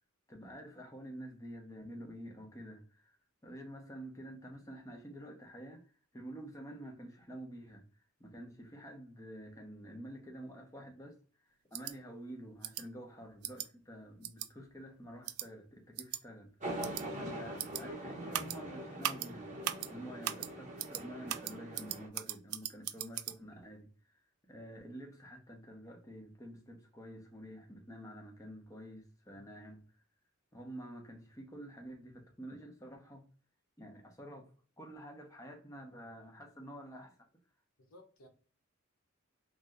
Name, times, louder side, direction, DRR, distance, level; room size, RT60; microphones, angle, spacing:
voice 1, 0.3-3.2 3.4-11.2 11.4-16.6 17.1-29.8 30.5-33.3 33.8-34.5 34.8-37.2, equal, 15° left, 0.7 m, -49 dB
sound 1, 11.7-11.9 12.6-12.8 13.4-13.7 14.2-14.5 15.3-15.5 16.0-16.2 16.8-17.0 17.6-17.8 18.3-18.6 19.0-19.3 19.6-19.9 20.2-20.5 20.8-21.0 21.3-23.3, right 13 dB, 80° right, 0.3 m, -38 dB
sound 2, 16.6-22.1, right 1 dB, 35° right, 0.8 m, -43 dB
voice 2, 37.8-38.3, left 1 dB, 90° left, 0.8 m, -58 dB
2.7 x 2.0 x 3.5 m
head